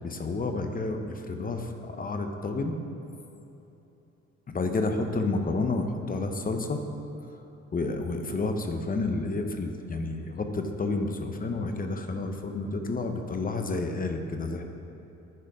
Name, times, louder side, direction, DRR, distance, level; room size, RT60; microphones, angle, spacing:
voice 1, 0.0-2.8 4.5-6.8 7.7-14.6, left 3 dB, 30° left, 5 dB, 0.8 m, -30 dB
10.5 x 4.4 x 5.1 m, 3.0 s
cardioid pair, 90°, 30 cm